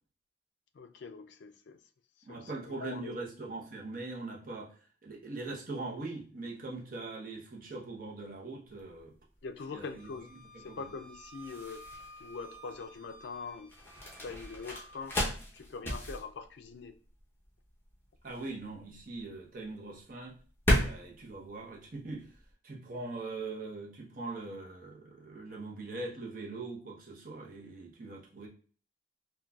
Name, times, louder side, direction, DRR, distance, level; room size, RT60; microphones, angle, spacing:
voice 1, 0.7-1.8 2.2-3.2 9.4-10.3 10.6-11.8 12.2-13.7 14.2-15.2 15.5-17.0, left 4 dB, 65° left, 0.4 m, -43 dB
voice 2, 2.3-9.2 9.7-10.1 10.5-10.9 18.2-20.4 20.8-22.3 22.6-28.5, right 3 dB, 45° right, 0.7 m, -41 dB
sound 1, 8.7-22.5, equal, 10° left, 0.7 m, -36 dB
Wind instrument woodwind instrument, 9.8-15.0, right 1 dB, 30° right, 1.0 m, -53 dB
3.8 x 2.3 x 2.3 m
head